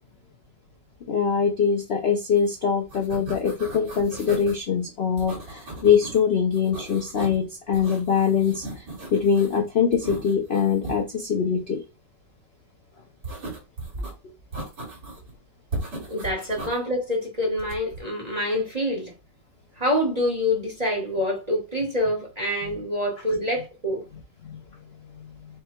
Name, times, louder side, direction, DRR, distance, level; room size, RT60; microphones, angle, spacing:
voice 1, 1.1-8.9 9.1-11.8 24.4-24.6, left 6 dB, 60° left, 0.6 m, -23 dB
sound 1, 2.4-2.5 2.8-4.6 5.2-6.2 6.5-7.4 7.7-9.6 9.9-11.0 13.2-14.1 14.5-15.3 15.7-16.8 17.6-18.0, right 2 dB, 75° right, 2.6 m, -37 dB
voice 2, 16.1-19.1 19.8-24.0, left 1 dB, 30° right, 0.9 m, -26 dB
5.0 x 2.2 x 4.3 m
omnidirectional pair, 1.9 m